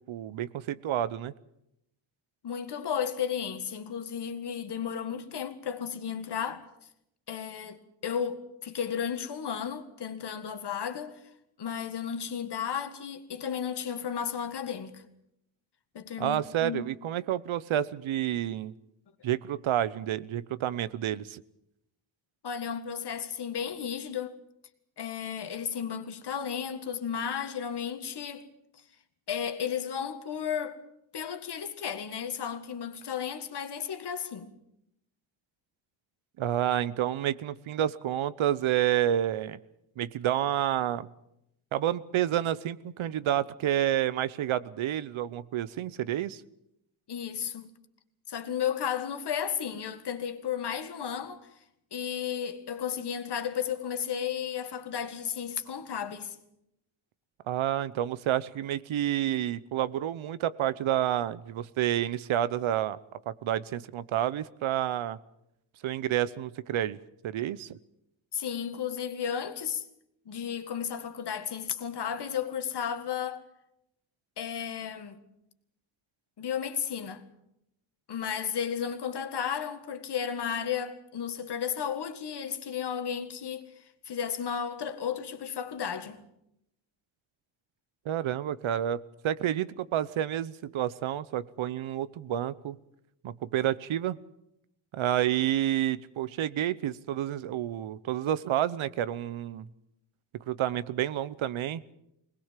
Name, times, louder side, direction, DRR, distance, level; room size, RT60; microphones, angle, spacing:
voice 1, 0.0-1.3 16.2-18.7 19.2-21.4 36.4-39.6 40.0-41.1 41.7-46.4 57.5-63.0 63.3-65.2 65.8-67.0 67.2-67.8 88.0-92.8 93.2-94.2 94.9-99.7 100.5-101.8, right 11 dB, 80° right, 0.9 m, -29 dB
voice 2, 2.4-6.7 7.3-11.2 11.6-15.0 15.9-16.8 22.4-24.4 25.0-28.5 29.3-30.8 31.1-34.5 47.1-47.7 48.3-51.5 51.9-56.4 68.3-69.9 70.3-73.4 74.4-75.2 76.4-77.2 78.1-86.2, left 8 dB, 55° left, 1.9 m, -33 dB
21.5 x 19.5 x 7.5 m
wide cardioid pair, 125°, 47 cm